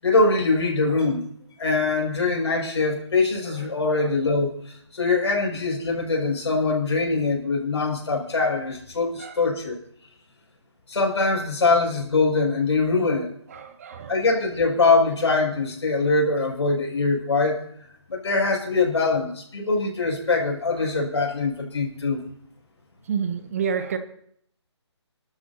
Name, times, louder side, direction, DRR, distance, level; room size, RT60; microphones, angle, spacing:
voice 1, 0.0-1.2 1.6-9.8 10.9-13.3 14.1-17.6 18.1-22.2, left 3 dB, 70° left, -1 dB, 6.4 m, -23 dB
voice 2, 13.5-14.2 20.8-20.9 23.1-24.0, right 7 dB, 30° right, 10 dB, 0.9 m, -29 dB
28.5 x 12.5 x 2.9 m, 0.67 s
hypercardioid pair, 160°, 15 cm